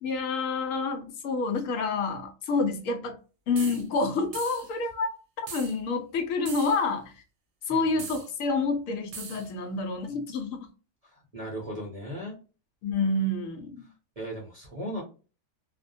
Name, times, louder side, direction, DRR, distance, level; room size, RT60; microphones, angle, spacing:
voice 1, 0.0-3.2 3.5-5.1 5.5-7.1 7.7-10.7 12.8-13.9, left 3 dB, 75° left, 0.9 m, -28 dB
sound 1, 3.6-3.8 4.3-4.7 5.5-5.8 6.5-6.8 8.0-8.3 9.1-9.5, right 6 dB, 65° right, 0.9 m, -40 dB
voice 2, 7.7-8.1 11.0-12.4 14.2-15.0, equal, 40° right, 0.6 m, -37 dB
2.4 x 2.1 x 2.5 m
omnidirectional pair, 1.5 m